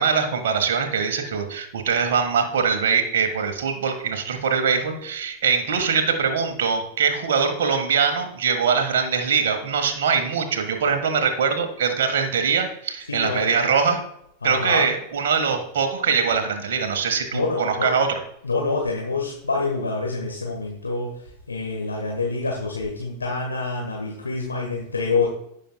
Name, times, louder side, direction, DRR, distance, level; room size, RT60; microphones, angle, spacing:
voice 1, 0.0-14.0 14.4-18.1, right 6 dB, 60° right, 5 dB, 1.6 m, -22 dB
voice 2, 13.1-13.6 14.4-14.9 17.3-18.0 18.4-21.2 21.5-25.3, left 3 dB, 75° left, -1 dB, 1.5 m, -26 dB
16.0 x 6.6 x 2.3 m, 0.74 s
figure-of-eight pair, 90°, 0 cm